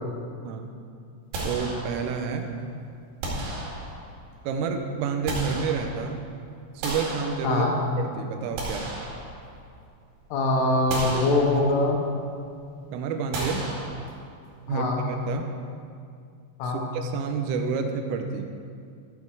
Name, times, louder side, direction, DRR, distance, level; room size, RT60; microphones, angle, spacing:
sound 1, 1.3-2.4 3.2-4.3 4.9-6.3 6.8-7.9 8.4-9.8 10.2-10.4 10.9-12.0 13.3-14.5, right 1 dB, 60° right, 4.0 m, -34 dB
voice 1, 1.4-2.5 4.4-6.2 6.8-7.7 8.0-8.9 12.9-13.6 14.7-15.5 16.6-18.5, right 5 dB, 85° right, 5 dB, 3.3 m, -29 dB
voice 2, 10.3-12.0 14.7-15.0 16.6-16.8, left 2 dB, 80° left, 0 dB, 3.9 m, -23 dB
13.0 x 8.0 x 4.7 m, 2.3 s
omnidirectional pair, 5.7 m